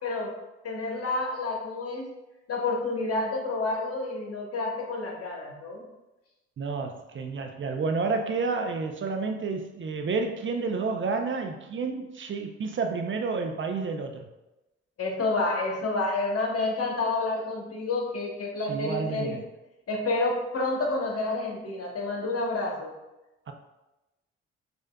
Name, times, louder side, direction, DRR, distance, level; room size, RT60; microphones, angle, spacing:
voice 1, 0.0-0.3 0.6-2.1 2.5-5.8 15.0-19.3 19.9-22.9, left 2 dB, 55° left, 0 dB, 1.1 m, -29 dB
voice 2, 6.6-14.3 18.7-19.4 23.5-23.6, right 4 dB, 40° right, 5 dB, 0.6 m, -30 dB
6.3 x 2.6 x 2.3 m, 1.0 s
hypercardioid pair, 50°, 29 cm